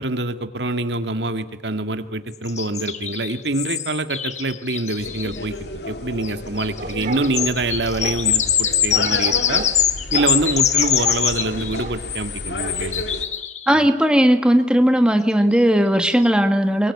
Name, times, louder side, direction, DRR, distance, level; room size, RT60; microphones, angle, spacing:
voice 1, 0.0-5.6 5.9-9.7 10.1-13.0 13.7-13.9, right 2 dB, 80° right, 9 dB, 1.9 m, -25 dB
sound 1, 2.5-5.4 6.2-6.3 6.6-13.8 15.6-15.7 16.0-16.3, left 9 dB, 40° left, 1.3 m, -23 dB
sound 2, 5.0-13.3, left 1 dB, 75° left, 2.6 m, -33 dB
sound 3, 6.5-8.2 8.9-9.7 10.1-10.4 10.8-11.2 11.8-12.0 12.6-12.8, right 3 dB, 45° right, 2.2 m, -33 dB
voice 2, 13.7-16.9, equal, 5° right, 7 dB, 1.4 m, -17 dB
23.5 x 23.0 x 9.7 m, 0.90 s
head